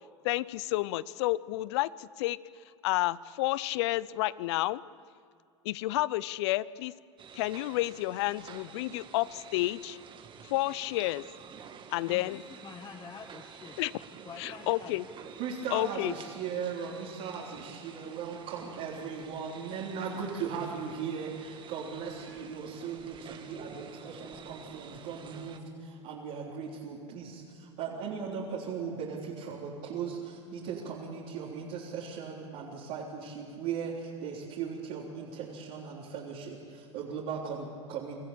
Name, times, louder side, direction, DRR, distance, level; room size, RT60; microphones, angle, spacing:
voice 1, 0.2-2.4 2.8-4.8 5.6-6.9 7.3-10.0 10.4-11.2 11.9-12.4 13.8-13.9 14.4-15.0 15.7-16.1, left 18 dB, 65° left, 20 dB, 0.6 m, -30 dB
sound 1, 7.2-25.6, right 7 dB, 30° right, 1.8 m, -50 dB
voice 2, 12.0-13.8 14.2-15.0, left 5 dB, 25° left, 6 dB, 1.3 m, -47 dB
voice 3, 15.4-38.2, right 6 dB, 60° right, -6 dB, 3.8 m, -38 dB
25.0 x 14.5 x 8.8 m, 2.3 s
hypercardioid pair, 95°, 15 cm